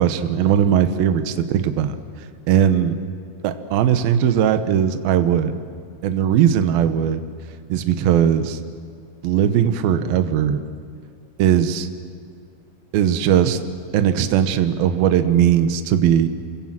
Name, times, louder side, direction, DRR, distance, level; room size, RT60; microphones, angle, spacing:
voice 1, 0.0-1.9 2.5-3.0 3.4-5.5 6.0-7.2 7.7-8.6 9.2-10.6 11.4-11.9 12.9-13.6 13.9-16.3, right 9 dB, 70° right, 9 dB, 2.6 m, -18 dB
27.5 x 23.0 x 7.6 m, 2.3 s
omnidirectional pair, 5.0 m